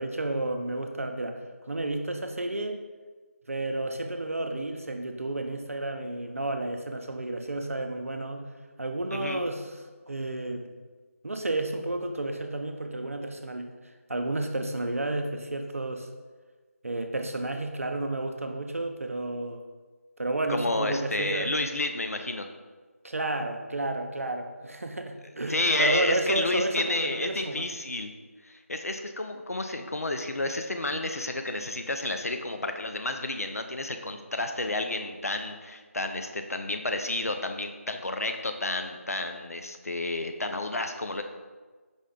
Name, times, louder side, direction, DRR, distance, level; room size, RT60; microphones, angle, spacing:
voice 1, 0.0-2.8 3.5-8.5 8.8-9.8 10.1-10.7 11.2-13.7 14.1-16.1 16.8-19.6 20.2-21.5 23.0-27.6, right 2 dB, 65° right, 5 dB, 0.4 m, -31 dB
voice 2, 9.1-9.4 20.5-22.5 25.5-28.1 28.4-41.2, left 2 dB, 75° left, 6 dB, 0.4 m, -30 dB
5.1 x 2.1 x 3.6 m, 1.4 s
figure-of-eight pair, 160°, 8 cm